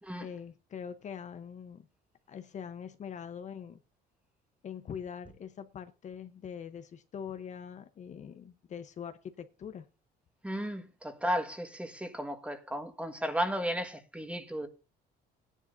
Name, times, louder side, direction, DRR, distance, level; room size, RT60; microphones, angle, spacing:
voice 1, 0.2-1.9 2.3-3.8 4.6-9.9, left 7 dB, 45° left, 0.9 m, -43 dB
voice 2, 10.4-14.7, equal, 5° right, 1.5 m, -34 dB
17.0 x 10.0 x 2.6 m
cardioid pair, 110°, 17 cm